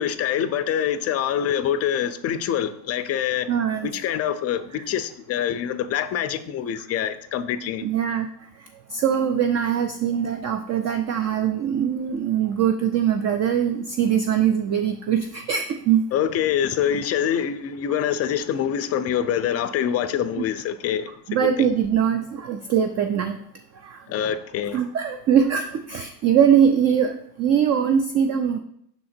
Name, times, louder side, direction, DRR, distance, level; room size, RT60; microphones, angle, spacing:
voice 1, 0.0-3.5 3.8-7.9 16.1-21.1 21.4-21.7 24.1-24.8, left 9 dB, 35° left, 0.4 m, -25 dB
voice 2, 3.5-3.9 4.7-4.8 7.8-8.3 8.9-16.0 21.3-23.4 23.8-24.0 24.7-28.6, right 8 dB, 35° right, 0.4 m, -22 dB
5.8 x 3.8 x 4.3 m
supercardioid pair, 105°, 49 cm